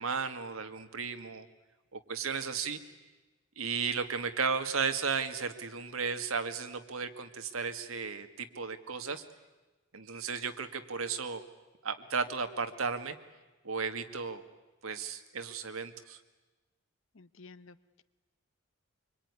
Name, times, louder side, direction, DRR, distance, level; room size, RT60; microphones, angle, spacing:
voice 1, 0.0-1.5 1.9-2.8 3.6-9.2 9.9-11.4 11.8-13.2 13.6-14.4 14.8-16.2, right 5 dB, 90° right, 8 dB, 1.9 m, -34 dB
voice 2, 17.1-18.0, left 3 dB, 65° left, 15 dB, 1.0 m, -54 dB
25.0 x 24.5 x 9.7 m, 1.2 s
head